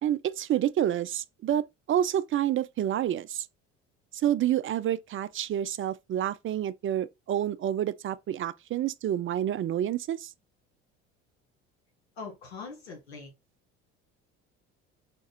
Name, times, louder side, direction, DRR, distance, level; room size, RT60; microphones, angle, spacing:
voice 1, 0.0-3.5 4.2-10.3, right 11 dB, 40° right, 0.5 m, -28 dB
voice 2, 12.2-13.3, left 4 dB, 90° left, 1.9 m, -42 dB
5.1 x 2.4 x 4.0 m
hypercardioid pair, 65°, 32 cm